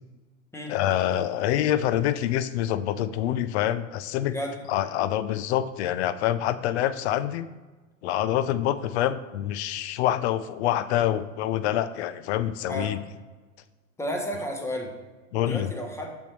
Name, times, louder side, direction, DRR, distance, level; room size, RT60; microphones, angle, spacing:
voice 1, 0.7-4.3 4.7-7.5 8.0-13.0 15.3-15.7, left 11 dB, 55° left, 14 dB, 0.5 m, -26 dB
voice 2, 14.0-14.9 15.4-16.1, equal, 5° left, 2 dB, 0.8 m, -32 dB
6.8 x 6.3 x 3.0 m, 1.3 s
hypercardioid pair, 120°, 41 cm